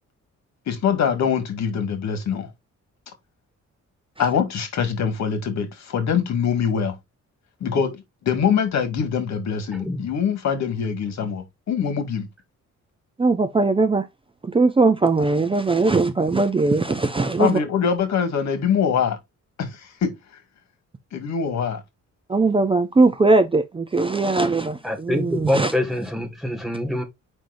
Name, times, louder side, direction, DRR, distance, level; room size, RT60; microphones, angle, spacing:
voice 1, 0.7-2.5 4.2-7.0 7.6-12.3 17.4-19.2 19.6-20.1 21.1-21.8, left 7 dB, 70° left, 2.0 m, -23 dB
voice 2, 13.2-14.1 14.4-17.6 22.3-25.8, right 3 dB, 20° right, 0.5 m, -20 dB
voice 3, 24.8-27.0, left 1 dB, ahead, 1.9 m, -25 dB
7.5 x 5.4 x 2.6 m
wide cardioid pair, 155°, 29 cm